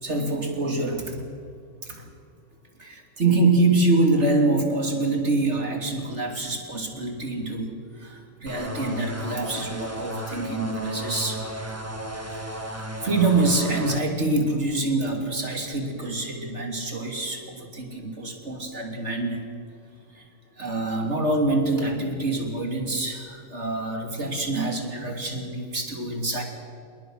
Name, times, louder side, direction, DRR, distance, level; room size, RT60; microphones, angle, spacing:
voice 1, 0.0-1.2 1.8-2.0 2.8-11.4 12.3-19.4 20.1-20.2 20.6-26.4, right 2 dB, 45° right, 3 dB, 3.4 m, -25 dB
sound 1, 8.5-14.0, right 1 dB, 10° right, 1.7 m, -34 dB
27.0 x 22.0 x 6.5 m, 2.4 s
omnidirectional pair, 1.6 m